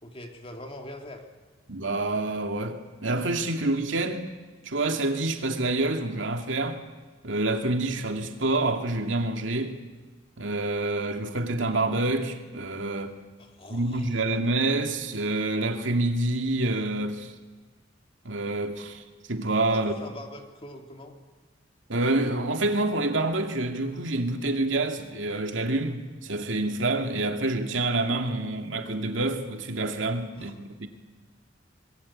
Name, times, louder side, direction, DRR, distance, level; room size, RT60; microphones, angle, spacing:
voice 1, 0.0-1.3 13.4-14.4 19.7-21.1 30.3-30.5, left 1 dB, 30° left, 2.7 m, -43 dB
voice 2, 1.7-4.3 4.7-6.8 7.2-9.8 10.4-13.1 13.7-17.3 18.2-19.0 19.3-19.9 21.9-30.9, right 2 dB, 75° right, 2.3 m, -27 dB
27.0 x 22.5 x 8.6 m
head